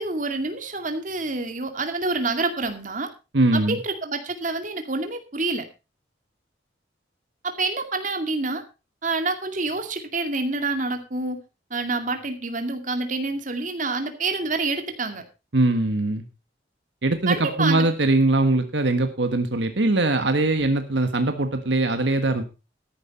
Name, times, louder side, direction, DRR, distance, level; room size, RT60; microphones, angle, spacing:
voice 1, 0.0-3.1 3.5-5.7 7.4-8.6 9.0-11.4 11.7-15.2 17.3-17.9, right 3 dB, 45° right, 6 dB, 2.3 m, -27 dB
voice 2, 3.3-3.8 15.5-16.2 17.0-22.4, right 2 dB, 80° right, 7 dB, 1.4 m, -21 dB
13.5 x 11.0 x 4.2 m, 0.30 s
head